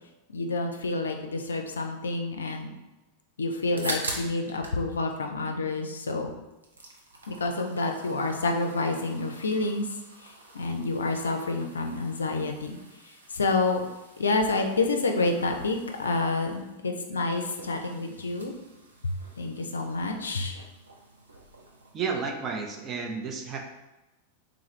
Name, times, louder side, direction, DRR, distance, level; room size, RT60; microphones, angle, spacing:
voice 1, 0.3-2.7 3.4-6.3 7.3-9.9 10.2-12.8 13.0-13.8 14.2-18.5 19.0-20.7, left 3 dB, 70° left, 4 dB, 0.4 m, -28 dB
sound 1, 3.8-4.8 5.1-6.1 6.4-21.9, right 2 dB, 75° right, 0.5 m, -44 dB
voice 2, 21.9-23.6, right 5 dB, 30° right, 2 dB, 0.5 m, -32 dB
3.7 x 2.3 x 3.1 m, 1.0 s
figure-of-eight pair, 90°, 0 cm